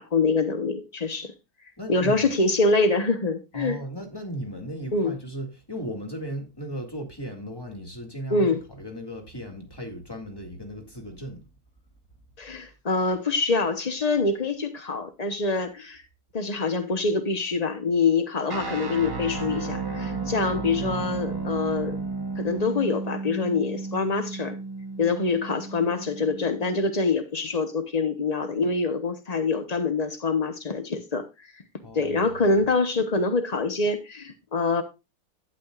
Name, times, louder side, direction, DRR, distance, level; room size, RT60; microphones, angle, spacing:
voice 1, 0.0-1.3 1.9-3.8 4.9-5.1 8.3-8.6 12.4-16.0 16.3-22.0 22.4-24.6 25.0-31.6 31.9-34.8, left 3 dB, 80° left, 0.3 m, -25 dB
voice 2, 1.8-2.4 3.5-11.5 20.6-21.6 31.8-32.6, right 1 dB, 10° left, 2.1 m, -37 dB
sound 1, 18.5-26.7, right 3 dB, 15° right, 0.8 m, -33 dB
sound 2, 18.5-22.9, right 11 dB, 80° right, 1.6 m, -38 dB
11.5 x 9.2 x 2.4 m
omnidirectional pair, 2.3 m